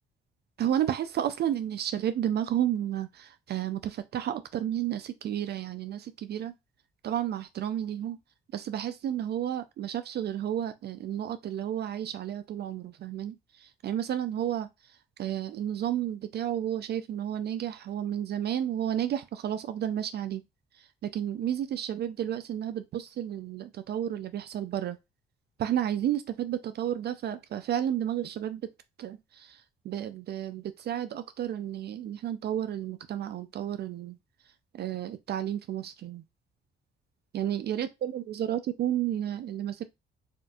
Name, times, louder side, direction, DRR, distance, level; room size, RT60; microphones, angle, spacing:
voice 1, 0.6-6.5 7.0-8.2 8.5-14.7 15.2-20.4 20.7-25.0 25.6-28.7 29.0-34.2 34.7-36.2 37.3-39.9, right 10 dB, 55° right, 0.4 m, -32 dB
4.3 x 2.5 x 2.3 m
cardioid pair, 90°, 20 cm